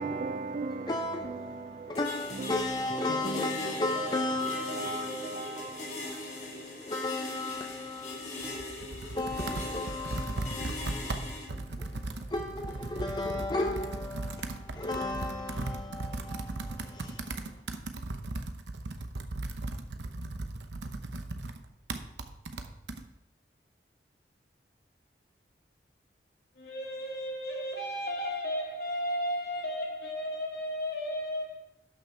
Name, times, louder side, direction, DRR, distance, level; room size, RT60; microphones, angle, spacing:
voice 1, 0.0-6.8 8.4-8.8, right 3 dB, 40° right, 0.4 m, -39 dB
voice 2, 0.9-5.8 6.9-8.6 9.2-11.1 12.3-16.5 17.0-17.1, left 2 dB, 25° left, 0.4 m, -34 dB
sound 1, 1.9-11.5, left 2 dB, 40° left, 2.3 m, -41 dB
Computer keyboard, 8.4-23.0, right 2 dB, 80° right, 0.8 m, -37 dB
voice 3, 26.5-31.6, equal, 60° left, 2.5 m, -34 dB
12.5 x 6.1 x 4.5 m
head